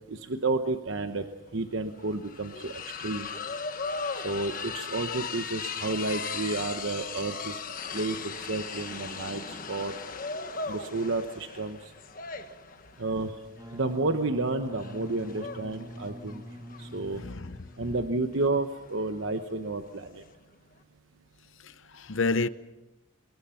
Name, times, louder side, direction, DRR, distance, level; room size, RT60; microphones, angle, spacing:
voice 1, 0.1-1.2 1.5-3.3 4.2-7.6 7.9-9.9 10.7-11.8 13.0-13.3 13.7-16.4 16.8-17.2 17.8-20.2, right 2 dB, 65° right, 1.0 m, -31 dB
sound 1, 1.1-1.2 1.5-20.3, left 5 dB, 40° left, 1.3 m, -38 dB
Wind instrument woodwind instrument, 13.5-18.0, equal, 15° right, 2.5 m, -44 dB
voice 2, 17.1-17.7 21.6-22.5, left 3 dB, 65° left, 0.8 m, -30 dB
26.5 x 21.0 x 5.8 m
head